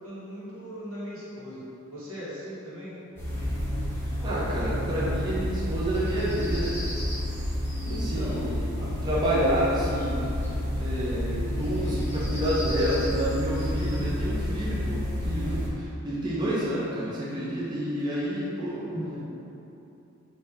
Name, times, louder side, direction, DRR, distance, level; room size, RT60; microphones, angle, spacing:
voice 1, 0.0-3.0 7.9-8.5 8.7-8.9 18.9-19.2, equal, 80° right, -10 dB, 1.3 m, -38 dB
sound 1, 3.2-15.7, left 1 dB, 10° left, 0.7 m, -30 dB
voice 2, 4.2-6.8 8.0-8.6 9.0-10.3 10.8-18.9, equal, 20° right, -8 dB, 0.5 m, -29 dB
3.3 x 2.7 x 3.5 m, 2.8 s
head